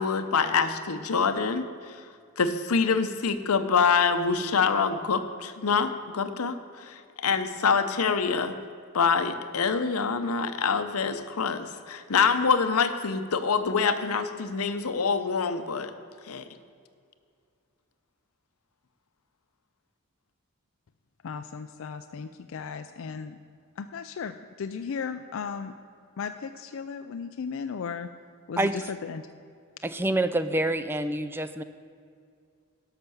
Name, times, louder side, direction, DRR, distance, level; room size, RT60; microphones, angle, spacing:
voice 1, 0.0-1.9 2.4-8.5 8.9-15.9 16.3-16.4, left 5 dB, 85° left, 10 dB, 0.7 m, -25 dB
voice 2, 21.2-23.4 23.8-25.7 26.2-28.1 28.5-29.3, left 6 dB, 65° left, 8 dB, 0.4 m, -36 dB
voice 3, 28.6-28.9 29.8-31.6, right 1 dB, 10° right, 11 dB, 0.3 m, -27 dB
12.0 x 5.9 x 6.9 m, 2.3 s
head